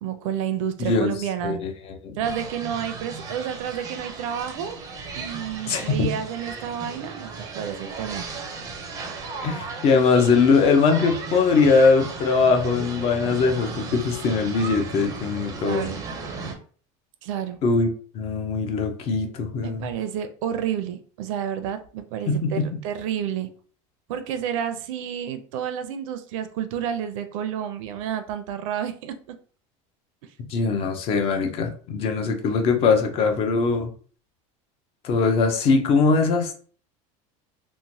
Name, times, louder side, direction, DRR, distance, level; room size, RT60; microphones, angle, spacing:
voice 1, 0.0-1.6 2.2-4.8 5.1-8.3 15.6-16.0 17.2-17.6 19.6-23.5 24.1-29.1, right 9 dB, 80° right, 9 dB, 0.5 m, -30 dB
voice 2, 0.8-1.2 1.4-1.7 2.0-2.1 5.7-6.1 9.4-15.9 17.6-17.9 18.1-19.9 22.3-22.8 30.5-33.9 35.0-36.5, left 4 dB, 35° left, 5 dB, 0.5 m, -21 dB
sound 1, 2.2-16.5, right 4 dB, 20° right, 0.5 m, -36 dB
3.0 x 2.1 x 2.7 m, 0.43 s
supercardioid pair, 155°, 17 cm